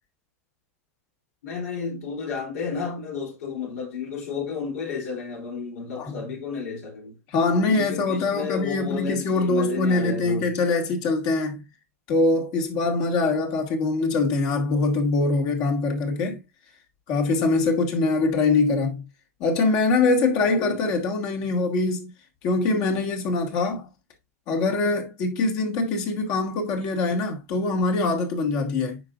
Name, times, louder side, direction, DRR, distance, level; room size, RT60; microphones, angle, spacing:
voice 1, 1.4-7.1 7.6-10.5 20.4-20.8, left 5 dB, 75° left, 3.4 m, -32 dB
voice 2, 7.3-11.6 12.1-16.4 17.1-19.0 19.4-22.1 22.4-23.9 24.5-29.0, left 3 dB, 50° left, 2.3 m, -23 dB
9.4 x 5.1 x 2.5 m
hypercardioid pair, 105°, 8 cm